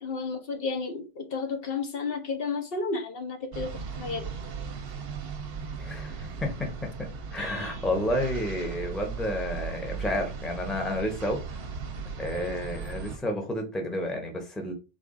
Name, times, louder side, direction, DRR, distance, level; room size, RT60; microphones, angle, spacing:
voice 1, 0.0-4.3, left 4 dB, 65° left, 4 dB, 0.9 m, -32 dB
sound 1, 3.5-13.2, right 5 dB, 70° right, 0.8 m, -37 dB
voice 2, 5.8-6.7 7.0-11.6 12.2-14.7, left 1 dB, ahead, 2 dB, 0.7 m, -31 dB
3.9 x 2.3 x 3.6 m, 0.30 s
omnidirectional pair, 1.1 m